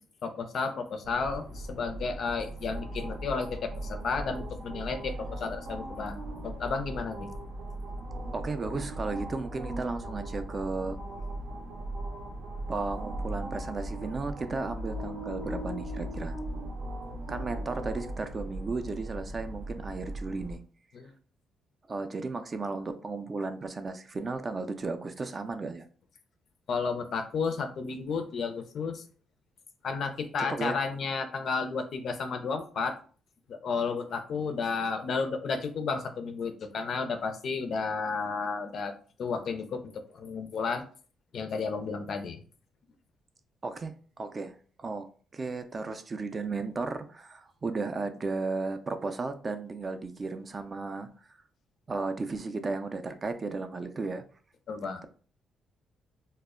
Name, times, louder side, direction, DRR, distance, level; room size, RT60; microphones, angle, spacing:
voice 1, 0.2-7.3 20.9-21.1 26.7-29.0 29.8-33.0 33.5-38.9 39.2-40.8 41.3-42.4 54.7-55.0, left 5 dB, 60° left, 7 dB, 0.4 m, -32 dB
sound 1, 1.0-20.6, right 1 dB, 80° right, 0.6 m, -38 dB
voice 2, 8.3-11.0 12.7-16.4 17.3-20.6 21.9-25.9 30.5-30.8 43.6-45.1 45.3-51.1 51.9-54.2, right 3 dB, 35° right, 9 dB, 0.3 m, -34 dB
2.1 x 2.1 x 3.5 m, 0.42 s
cardioid pair, 90°, 0 cm